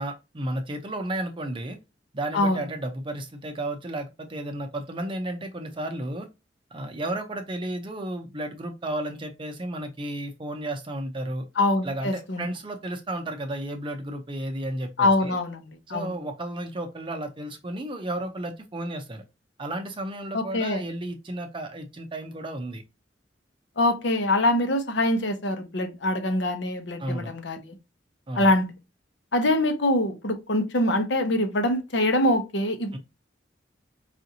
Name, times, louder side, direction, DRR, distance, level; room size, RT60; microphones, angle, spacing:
voice 1, 0.0-1.8 2.1-6.3 6.7-11.5 11.8-15.4 15.9-19.2 19.6-22.8 27.0-27.3 28.3-28.5 32.9-33.0, right 1 dB, 25° right, 0.5 m, -33 dB
voice 2, 11.6-12.5 15.0-16.1 20.3-20.8 23.8-27.8 28.3-28.7 29.3-33.0, left 1 dB, 75° left, 0.9 m, -24 dB
4.9 x 2.6 x 2.7 m
head